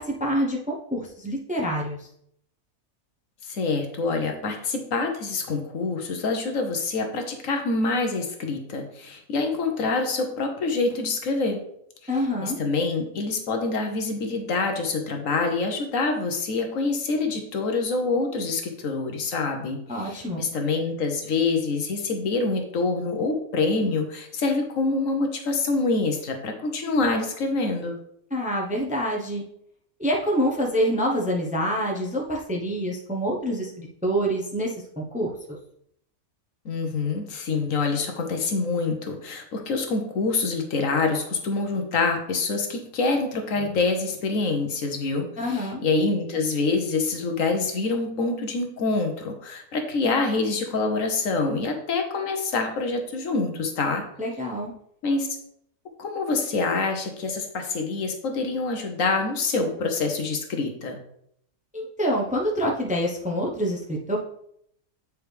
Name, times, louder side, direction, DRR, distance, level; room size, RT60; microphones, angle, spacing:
voice 1, 0.0-2.1 12.1-12.6 19.9-20.4 28.3-29.4 30.0-35.3 45.4-45.8 54.2-54.7 61.7-64.2, equal, 5° right, -1 dB, 0.7 m, -26 dB
voice 2, 3.4-11.6 12.4-28.0 36.6-54.0 55.0-55.4 56.0-61.0, left 3 dB, 65° left, 4 dB, 1.2 m, -26 dB
8.5 x 4.6 x 3.3 m, 0.71 s
omnidirectional pair, 1.6 m